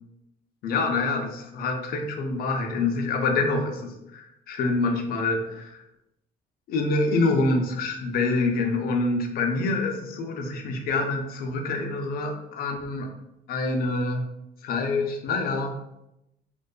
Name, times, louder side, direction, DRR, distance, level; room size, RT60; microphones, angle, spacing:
voice 1, 0.6-5.8 6.7-13.1 13.5-14.2 14.6-15.7, left 3 dB, 60° left, 4 dB, 0.5 m, -26 dB
2.4 x 2.2 x 2.3 m, 0.86 s
cardioid pair, 110°, 17 cm